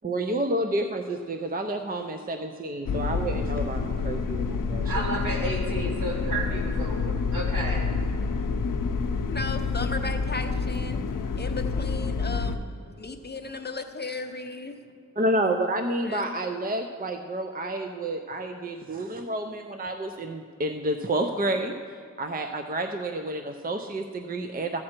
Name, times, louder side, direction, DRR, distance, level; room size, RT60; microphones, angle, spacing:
voice 1, 0.0-4.9 15.2-21.7 22.2-24.8, right 1 dB, 30° right, 6 dB, 0.5 m, -29 dB
sound 1, 2.9-12.6, left 4 dB, 80° left, 0.7 m, -28 dB
voice 2, 4.8-7.8, right 1 dB, 70° right, -4 dB, 2.7 m, -32 dB
voice 3, 9.3-11.0 11.4-12.6 13.0-14.8 16.0-16.3, left 3 dB, 30° left, 6 dB, 0.6 m, -35 dB
14.5 x 7.5 x 4.4 m, 2.1 s
wide cardioid pair, 100°, 32 cm